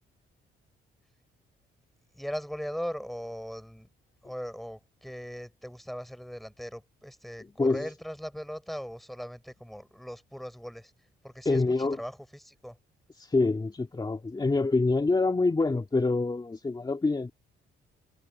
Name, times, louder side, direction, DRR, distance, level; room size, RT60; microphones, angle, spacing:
voice 1, 2.1-3.9 4.2-10.9 11.2-12.8, equal, ahead, 4.8 m, -39 dB
voice 2, 11.5-12.0 13.2-17.3, left 3 dB, 20° left, 2.5 m, -26 dB
cardioid pair, 90°, 20 cm